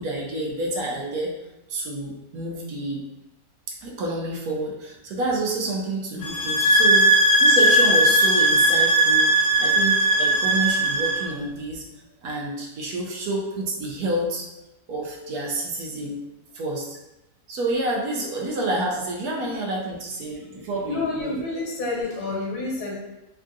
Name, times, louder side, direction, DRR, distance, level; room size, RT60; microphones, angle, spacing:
voice 1, 0.0-1.4 1.7-3.0 3.7-11.8 12.2-14.5 14.9-16.2 16.5-17.0 17.5-21.4, right 2 dB, 70° right, -2 dB, 1.1 m, -29 dB
sound 1, 6.2-11.3, right 1 dB, 60° left, 0.6 m, -18 dB
voice 2, 20.9-23.0, left 3 dB, 75° left, -3 dB, 1.3 m, -29 dB
3.5 x 2.4 x 2.6 m, 0.97 s
omnidirectional pair, 1.7 m